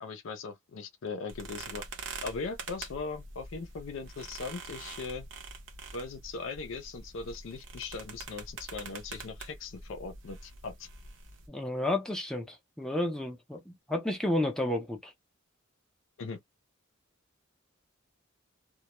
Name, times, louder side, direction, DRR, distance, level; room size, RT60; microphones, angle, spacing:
voice 1, 0.0-1.8 2.2-5.3 5.9-10.9 16.2-16.4, left 4 dB, 65° left, 0.4 m, -39 dB
sound 1, 1.3-11.5, right 4 dB, 65° right, 0.7 m, -45 dB
voice 2, 11.5-15.1, left 1 dB, 5° left, 0.5 m, -31 dB
2.2 x 2.0 x 2.9 m
head